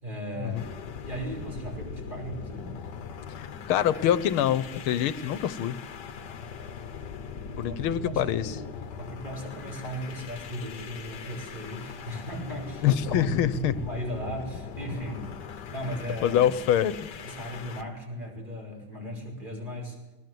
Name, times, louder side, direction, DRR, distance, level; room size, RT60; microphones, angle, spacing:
voice 1, 0.0-0.7 1.0-2.8 7.4-8.6 9.0-15.3 15.7-16.4 17.2-20.0, equal, 20° right, 0 dB, 5.9 m, -37 dB
sound 1, 0.5-17.9, left 6 dB, 60° left, 1.7 m, -40 dB
voice 2, 3.4-5.8 7.6-8.6 12.8-13.8 16.2-16.9, left 10 dB, 85° left, 16 dB, 1.8 m, -25 dB
21.0 x 19.0 x 7.9 m, 1.1 s
omnidirectional pair, 2.3 m